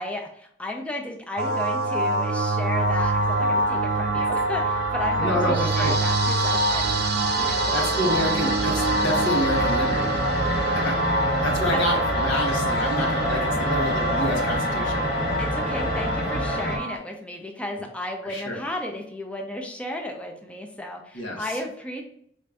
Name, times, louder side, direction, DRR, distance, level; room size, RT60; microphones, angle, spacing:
voice 1, 0.0-8.3 10.6-11.0 11.7-11.8 15.4-22.0, left 1 dB, 5° left, 2 dB, 0.5 m, -34 dB
sound 1, 1.4-17.0, right 2 dB, 55° right, 0.5 m, -25 dB
sound 2, 2.7-16.8, left 1 dB, 40° left, 1.0 m, -29 dB
voice 2, 5.2-5.9 7.7-10.1 10.8-11.0 11.4-15.0 18.2-18.6 21.1-21.4, equal, 90° left, -1 dB, 1.2 m, -28 dB
4.2 x 2.6 x 3.4 m, 0.67 s
head